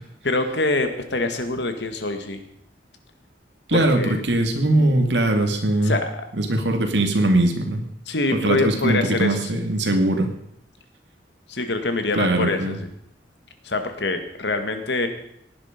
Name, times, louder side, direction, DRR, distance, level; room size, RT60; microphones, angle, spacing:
voice 1, 0.2-2.4 3.7-4.2 5.8-6.2 8.1-9.5 11.5-12.8 13.6-15.1, left 2 dB, 80° left, 7 dB, 2.0 m, -25 dB
voice 2, 3.7-6.0 6.3-7.8 8.3-10.3 12.1-12.8, right 1 dB, 90° right, 4 dB, 2.3 m, -21 dB
18.0 x 10.5 x 5.2 m, 0.72 s
head